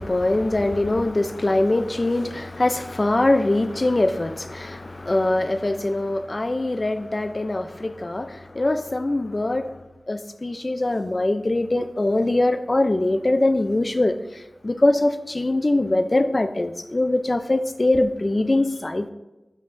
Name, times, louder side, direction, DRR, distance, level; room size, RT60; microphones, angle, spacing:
voice 1, 0.0-9.7 10.1-19.1, left 2 dB, 40° left, 10 dB, 0.5 m, -22 dB
11.5 x 5.4 x 2.6 m, 1.0 s
wide cardioid pair, 75°, 0 cm